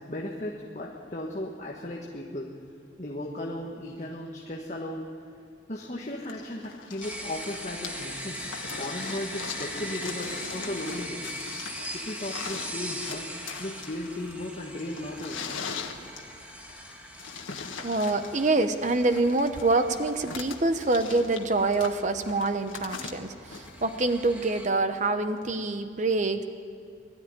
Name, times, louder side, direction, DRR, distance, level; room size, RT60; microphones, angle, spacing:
voice 1, 0.0-2.5 3.0-5.1 5.7-8.5 8.8-11.3 11.9-13.3 13.6-15.4 16.2-16.3, left 1 dB, 35° left, -2 dB, 1.6 m, -36 dB
sound 1, 6.3-24.4 25.4-25.5, left 5 dB, 85° left, 1.6 m, -41 dB
sound 2, 7.0-24.7, equal, 10° right, 1.4 m, -41 dB
voice 2, 17.8-26.4, right 2 dB, 40° right, 8 dB, 0.9 m, -26 dB
21.5 x 13.0 x 9.9 m, 2.3 s
head